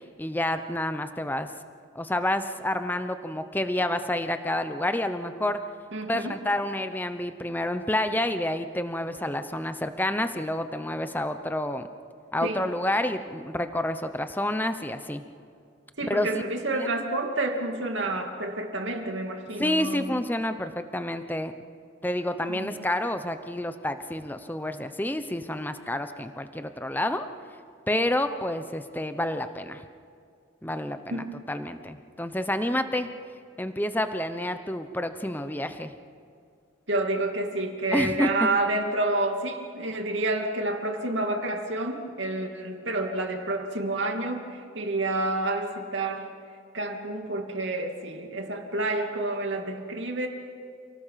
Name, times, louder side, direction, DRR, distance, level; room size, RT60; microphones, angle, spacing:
voice 1, 0.2-1.5 1.9-5.6 6.1-11.9 12.3-15.2 16.1-16.4 16.7-16.9 19.6-21.5 22.0-27.3 27.9-29.8 30.6-33.1 33.6-35.9 37.9-38.3, left 1 dB, 10° left, 9 dB, 0.8 m, -29 dB
voice 2, 5.9-6.3 12.4-12.6 16.0-20.2 22.5-22.7 31.1-31.4 36.9-46.3 46.7-50.3, right 2 dB, 70° right, 3 dB, 2.5 m, -29 dB
29.0 x 18.5 x 5.8 m, 2.3 s
head